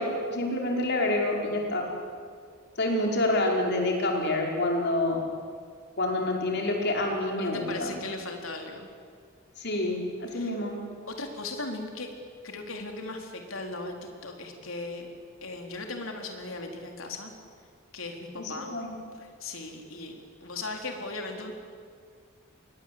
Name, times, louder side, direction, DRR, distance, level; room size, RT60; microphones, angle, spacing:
voice 1, 0.0-1.8 2.8-5.2 6.0-8.0 9.6-10.8 18.4-18.9, left 1 dB, 55° left, 1 dB, 5.3 m, -27 dB
voice 2, 7.4-8.9 10.3-10.5 11.1-12.1 12.4-13.9 14.2-15.1 15.4-17.3 17.9-18.7 19.2-21.5, left 2 dB, 75° left, 3 dB, 4.1 m, -37 dB
29.0 x 23.0 x 8.8 m, 2.1 s
head